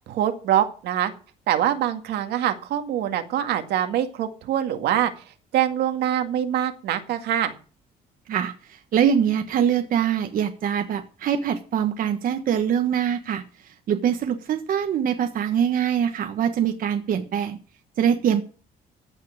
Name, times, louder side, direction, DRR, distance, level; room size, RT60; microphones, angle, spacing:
voice 1, 0.1-1.1 1.5-5.1 5.5-7.5, right 11 dB, 75° right, 7 dB, 2.0 m, -24 dB
voice 2, 8.3-17.6 18.0-18.4, right 8 dB, 55° right, 6 dB, 1.4 m, -23 dB
15.0 x 5.8 x 8.7 m, 0.39 s
cardioid pair, 110°, 17 cm